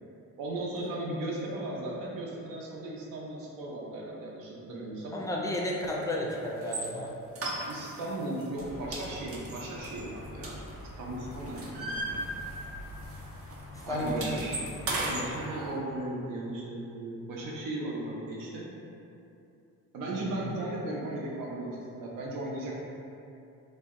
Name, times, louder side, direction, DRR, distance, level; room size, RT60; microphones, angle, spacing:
voice 1, 0.4-5.2 7.6-10.6 11.0-12.2 13.8-18.7 19.9-22.8, right 1 dB, 85° right, -3 dB, 0.7 m, -36 dB
voice 2, 5.1-7.1 13.7-14.5 20.2-20.3, left 1 dB, 10° left, -2 dB, 0.3 m, -33 dB
sound 1, 6.6-6.9 7.3-8.1 8.4-8.6 8.9-11.0 11.3-12.8 13.0-13.2 13.5-15.3, right 2 dB, 45° right, 0.6 m, -35 dB
sound 2, 8.6-15.4, left 1 dB, 85° left, 0.6 m, -45 dB
2.7 x 2.1 x 3.5 m, 2.6 s
cardioid pair, 100°, 32 cm